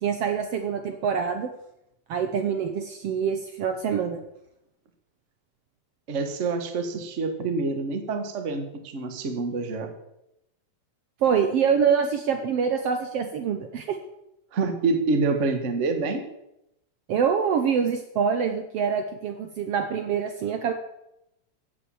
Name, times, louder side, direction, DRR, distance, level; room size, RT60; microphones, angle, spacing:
voice 1, 0.0-1.5 2.1-4.2 11.2-14.0 17.1-20.7, right 7 dB, 65° right, 6 dB, 1.7 m, -25 dB
voice 2, 6.1-9.9 14.5-16.2, right 3 dB, 35° right, 7 dB, 1.3 m, -27 dB
15.0 x 8.3 x 7.1 m, 0.84 s
omnidirectional pair, 3.4 m